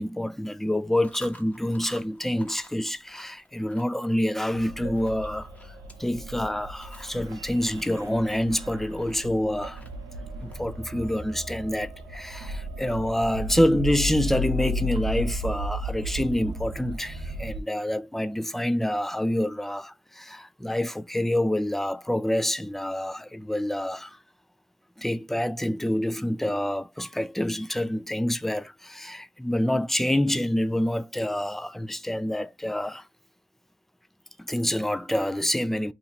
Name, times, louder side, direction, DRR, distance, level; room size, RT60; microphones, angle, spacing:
voice 1, 0.0-5.5 6.0-9.8 10.4-24.2 25.0-33.0 34.4-35.9, left 1 dB, 5° left, 0.4 m, -27 dB
Chewing mastication, 0.9-14.0, equal, 20° left, 1.0 m, -52 dB
sound 1, 4.5-17.6, equal, 90° right, 0.7 m, -34 dB
2.9 x 2.5 x 4.1 m
cardioid pair, 65°, 7 cm